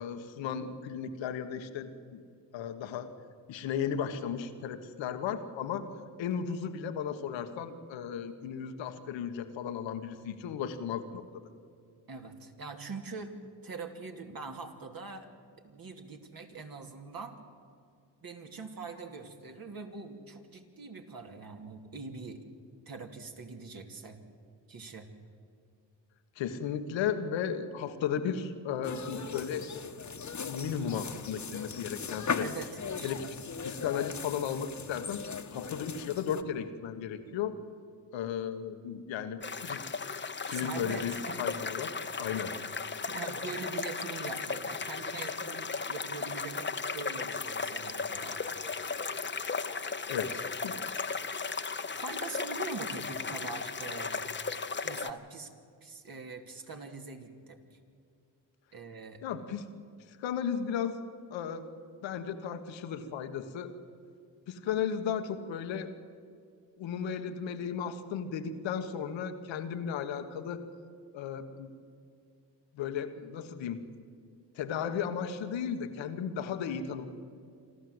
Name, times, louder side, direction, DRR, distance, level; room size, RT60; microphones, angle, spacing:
voice 1, 0.0-2.2 2.5-3.1 3.5-5.8 6.2-11.2 26.3-29.7 30.4-32.5 33.0-33.3 33.6-35.2 35.5-37.6 38.1-41.9 42.2-42.5 49.7-50.7 59.2-59.6 60.1-61.0 61.3-61.7 62.0-63.7 64.5-65.9 66.8-70.6 71.1-71.7 72.7-73.8 74.5-77.1, left 7 dB, 85° left, 8 dB, 1.5 m, -35 dB
voice 2, 12.1-13.4 13.6-15.3 15.6-17.4 18.2-22.4 22.9-24.2 24.7-25.1 32.4-33.3 40.5-41.4 43.1-48.5 51.9-54.3 54.8-55.5 55.8-57.8 58.7-59.2, right 4 dB, 50° right, 3 dB, 2.8 m, -43 dB
sound 1, 28.8-36.4, left 5 dB, 40° left, 1.3 m, -38 dB
sound 2, 39.4-55.1, left 4 dB, 25° left, 1.0 m, -36 dB
27.0 x 13.0 x 8.0 m, 2.3 s
supercardioid pair, 60°, 44 cm